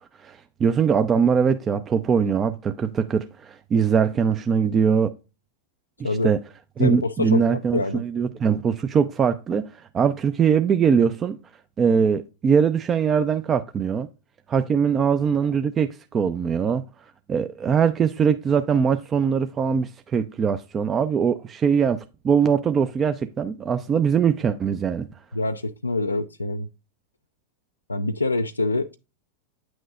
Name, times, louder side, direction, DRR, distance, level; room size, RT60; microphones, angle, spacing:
voice 1, 0.2-5.1 6.0-6.4 6.8-11.4 11.8-14.1 14.5-16.8 17.3-25.1, right 6 dB, 25° right, 0.5 m, -22 dB
voice 2, 6.8-8.0 25.3-26.7 27.9-29.0, left 2 dB, 85° left, 0.4 m, -25 dB
9.0 x 6.2 x 2.4 m
figure-of-eight pair, 95°, 0 cm